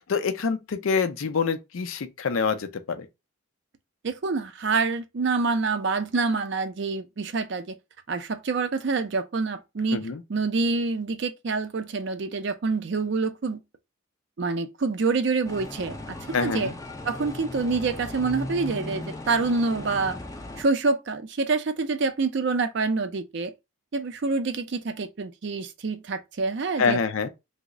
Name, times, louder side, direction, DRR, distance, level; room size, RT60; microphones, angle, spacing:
voice 1, 0.1-3.1 9.9-10.2 16.3-16.7 26.8-27.3, left 5 dB, 75° left, 0.5 m, -26 dB
voice 2, 4.0-7.7 8.1-13.6 14.4-16.7 17.0-20.2 20.6-23.5 23.9-27.0, right 4 dB, 55° right, 0.4 m, -27 dB
sound 1, 15.5-20.6, left 2 dB, 15° left, 0.3 m, -37 dB
3.0 x 2.0 x 3.6 m
head